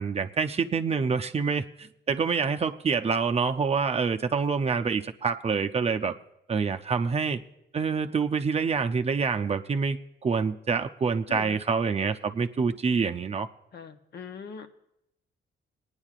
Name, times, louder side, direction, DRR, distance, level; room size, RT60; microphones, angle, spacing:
voice 1, 0.0-6.1 6.5-7.4 7.7-13.5, right 5 dB, 30° right, 5 dB, 0.6 m, -26 dB
voice 2, 11.3-11.6 13.7-14.7, left 7 dB, 55° left, 7 dB, 0.9 m, -41 dB
24.0 x 9.7 x 2.5 m, 0.78 s
cardioid pair, 90°, 20 cm